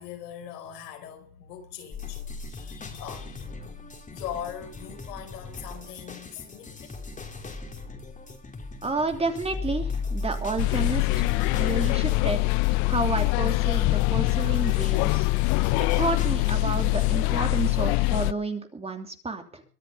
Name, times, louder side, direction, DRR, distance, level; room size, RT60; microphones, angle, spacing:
voice 1, 0.0-7.0, left 9 dB, 80° left, 5.1 m, -41 dB
sound 1, 1.9-17.3, left 3 dB, 15° left, 3.4 m, -38 dB
voice 2, 8.8-12.4 12.9-15.3 16.0-19.6, right 3 dB, 15° right, 2.8 m, -30 dB
sound 2, 10.6-18.3, left 23 dB, 50° left, 0.7 m, -24 dB
23.0 x 7.9 x 5.7 m
supercardioid pair, 115°, 47 cm